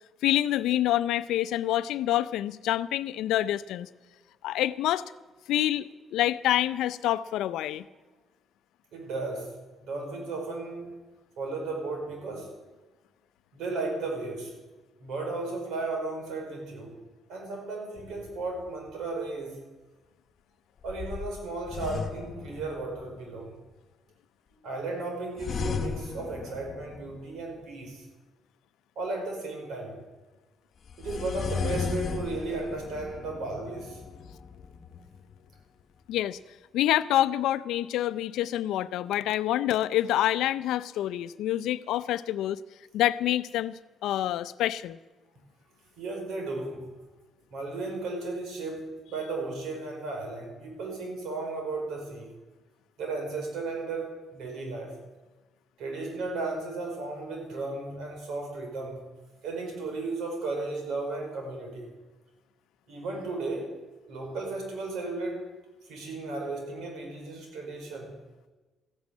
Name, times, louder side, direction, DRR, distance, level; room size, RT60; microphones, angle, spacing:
voice 1, 0.2-3.9 4.4-5.1 5.5-7.9 36.1-36.4 36.7-42.6 42.9-45.0, left 13 dB, 85° left, 15 dB, 0.5 m, -27 dB
voice 2, 8.9-9.5 9.8-10.9 11.4-12.5 13.5-14.5 15.0-17.0 17.3-19.6 20.8-23.5 24.6-28.0 28.9-30.0 31.0-34.0 46.0-46.9 47.5-52.3 53.0-55.0 55.8-59.0 59.4-61.9 62.9-63.7 64.1-65.5 65.8-68.1, right 3 dB, 80° right, 2 dB, 5.0 m, -35 dB
sound 1, 18.0-18.9 20.9-23.2 25.4-27.5 30.9-35.5, left 5 dB, 50° left, 1.1 m, -36 dB
14.5 x 9.7 x 8.4 m, 1.2 s
cardioid pair, 90°, 0 cm